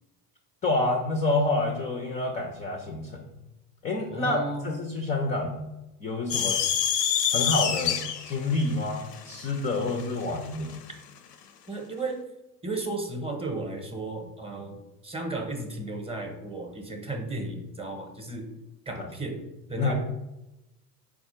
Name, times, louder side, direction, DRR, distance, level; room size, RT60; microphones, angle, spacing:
voice 1, 0.6-3.2 3.8-5.6 6.0-6.6 7.3-8.0 8.3-10.7 19.0-19.1 19.8-19.9, left 2 dB, 20° left, 2 dB, 0.3 m, -28 dB
voice 2, 4.1-4.7 11.7-12.2 12.6-18.5 18.9-19.4 19.7-19.9, right 2 dB, 10° right, 2 dB, 0.7 m, -34 dB
sound 1, 6.3-10.8, left 8 dB, 90° left, 0.5 m, -27 dB
4.3 x 2.3 x 4.2 m, 0.96 s
hypercardioid pair, 80°, 48 cm